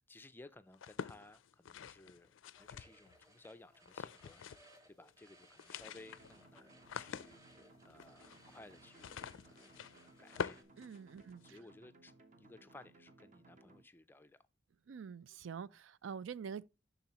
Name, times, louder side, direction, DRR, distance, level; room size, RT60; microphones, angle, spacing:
voice 1, 0.0-4.4 4.9-9.8 10.2-10.6 11.2-12.1 12.4-14.4, left 2 dB, 10° left, 0.3 m, -59 dB
sound 1, 0.7-3.3 3.9-4.8 5.0-5.1 5.4-11.6, left 7 dB, 90° left, 0.4 m, -47 dB
sound 2, 2.6-10.6, right 1 dB, 20° right, 1.1 m, -65 dB
sound 3, 5.8-13.8, right 2 dB, 40° right, 0.9 m, -63 dB
voice 2, 10.8-11.6 14.9-16.6, right 6 dB, 80° right, 0.4 m, -46 dB
11.5 x 4.0 x 2.9 m
head